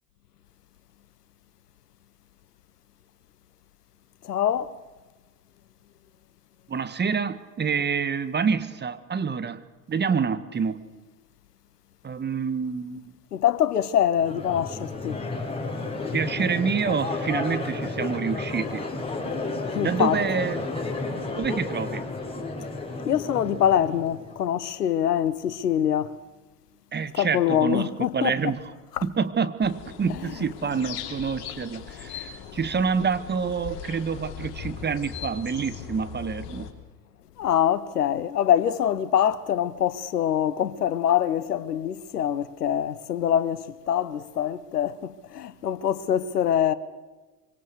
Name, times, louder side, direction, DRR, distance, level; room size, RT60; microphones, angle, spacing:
voice 1, 4.2-4.7 13.3-15.2 19.7-20.2 23.1-26.2 27.1-28.5 28.9-29.0 30.1-30.4 37.4-46.7, left 10 dB, 75° left, 1.2 m, -24 dB
voice 2, 6.7-9.6 9.9-10.8 12.0-13.1 16.1-18.9 19.8-20.6 21.4-22.1 26.9-27.9 28.1-28.6 29.0-36.7, right 6 dB, 20° right, 1.7 m, -27 dB
Crowd, 14.2-24.4, left 3 dB, 10° left, 5.9 m, -32 dB
sound 1, 29.6-36.7, left 8 dB, 55° left, 3.7 m, -39 dB
25.5 x 25.0 x 6.6 m
figure-of-eight pair, 70°, 47 cm